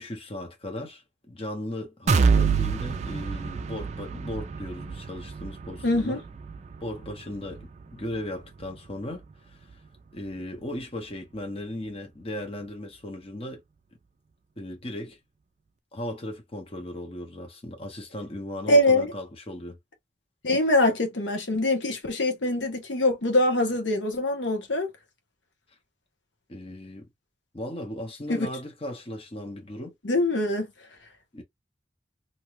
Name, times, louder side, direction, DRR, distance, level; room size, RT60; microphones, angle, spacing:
voice 1, 0.0-6.2 6.8-9.6 10.1-13.6 14.6-15.2 15.9-19.8 26.5-27.1 27.5-29.9 31.3-31.4, left 1 dB, 30° left, 0.9 m, -37 dB
sound 1, 2.1-9.9 10.3-10.4 10.8-10.9, right 5 dB, 40° right, 0.3 m, -28 dB
voice 2, 5.8-6.2 18.7-19.1 20.4-24.9 28.3-28.5 30.0-30.7, left 1 dB, 85° left, 0.9 m, -23 dB
2.7 x 2.3 x 3.0 m
head